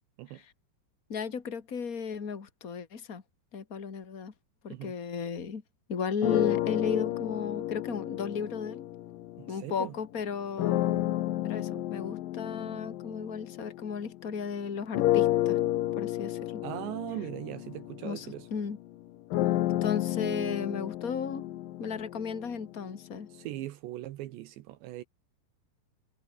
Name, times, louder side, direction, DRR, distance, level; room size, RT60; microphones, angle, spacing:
voice 1, 1.1-3.2 3.5-4.3 4.6-5.6 5.9-8.9 9.5-11.0 11.4-15.6 15.9-16.6 18.0-18.8 19.8-21.4 21.8-23.3, left 6 dB, 40° left, 1.2 m, -35 dB
sound 1, 6.2-9.8 10.6-14.4 14.9-22.9, left 14 dB, 75° left, 2.2 m, -31 dB
voice 2, 9.4-9.9 16.6-18.5 23.3-25.0, right 15 dB, 75° right, 3.2 m, -39 dB
omnidirectional pair, 5.3 m